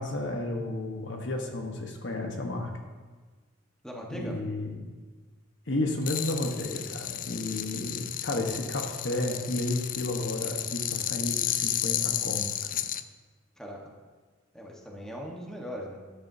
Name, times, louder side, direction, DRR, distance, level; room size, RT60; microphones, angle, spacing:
voice 1, 0.0-2.7 4.1-4.7 5.7-12.4, left 2 dB, 65° left, 3 dB, 1.2 m, -32 dB
voice 2, 3.8-4.4 13.6-13.9 14.5-16.0, equal, 5° left, -2 dB, 1.3 m, -39 dB
sound 1, 6.0-13.0, left 11 dB, 45° left, 0.4 m, -32 dB
13.0 x 10.0 x 2.7 m, 1.4 s
head